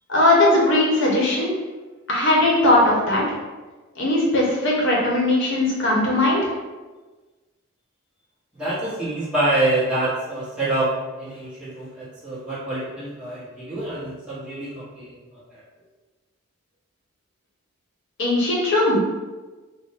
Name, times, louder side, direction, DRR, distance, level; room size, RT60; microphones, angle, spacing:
voice 1, 0.1-1.5 2.1-3.2 4.0-6.4 18.2-19.1, left 1 dB, 60° left, -3 dB, 0.9 m, -19 dB
voice 2, 8.5-10.9 11.2-15.6, right 2 dB, 5° right, -11 dB, 0.9 m, -26 dB
4.1 x 2.1 x 3.3 m, 1.3 s
head